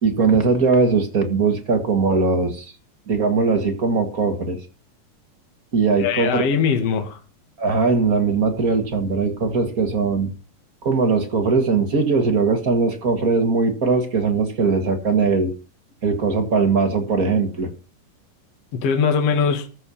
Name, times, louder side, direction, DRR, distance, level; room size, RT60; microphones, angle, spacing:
voice 1, 0.0-2.7 3.1-4.6 5.7-6.4 7.6-10.3 10.8-15.5 16.0-17.7, right 4 dB, 40° right, 1.4 m, -20 dB
voice 2, 6.0-7.2 18.7-19.7, left 6 dB, 50° left, 2.6 m, -21 dB
14.5 x 5.6 x 7.0 m
omnidirectional pair, 4.0 m